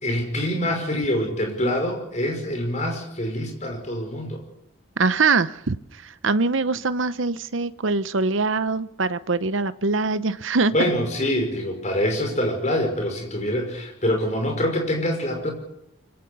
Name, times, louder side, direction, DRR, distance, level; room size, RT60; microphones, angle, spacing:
voice 1, 0.0-4.4 10.7-15.5, left 1 dB, 35° left, 3 dB, 5.6 m, -25 dB
voice 2, 5.0-5.8 6.0-10.9, right 3 dB, 75° right, 14 dB, 0.9 m, -23 dB
24.5 x 16.5 x 7.0 m, 0.82 s
head